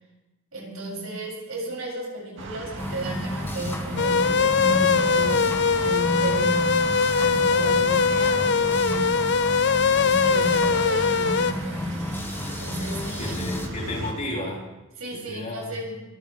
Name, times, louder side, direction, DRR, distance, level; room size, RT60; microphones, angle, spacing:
voice 1, 0.5-6.8 7.1-9.2 9.8-12.1 12.6-13.4 15.0-16.0, right 1 dB, 75° right, -3 dB, 7.5 m, -32 dB
sound 1, 2.4-14.1, right 1 dB, 60° right, 2.5 m, -38 dB
sound 2, 2.8-13.7, left 1 dB, 10° left, 1.2 m, -34 dB
sound 3, 4.0-11.5, left 5 dB, 55° left, 0.7 m, -21 dB
voice 2, 13.2-14.7 15.1-15.8, left 1 dB, 35° left, -3 dB, 4.0 m, -33 dB
23.0 x 16.5 x 3.6 m, 1.0 s
head